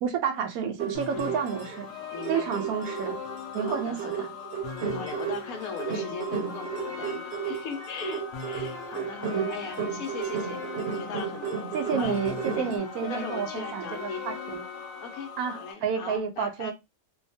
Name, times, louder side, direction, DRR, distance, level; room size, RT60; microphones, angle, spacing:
voice 1, 0.0-1.9 2.3-3.2 3.5-4.3 9.3-9.5 11.7-14.6 15.4-16.7, right 7 dB, 85° right, 1.0 m, -30 dB
sound 1, 0.8-1.8 2.1-12.8, right 7 dB, 60° right, 0.8 m, -34 dB
sound 2, 0.9-15.7, left 5 dB, 60° left, 1.0 m, -40 dB
voice 2, 2.1-2.8 3.6-4.3 4.9-10.6 10.9-11.6 11.9-12.2 12.5-14.3 15.0-16.7, left 5 dB, 80° left, 1.1 m, -39 dB
Trumpet, 6.9-15.3, left 4 dB, 25° left, 0.7 m, -46 dB
2.7 x 2.3 x 2.6 m
omnidirectional pair, 1.5 m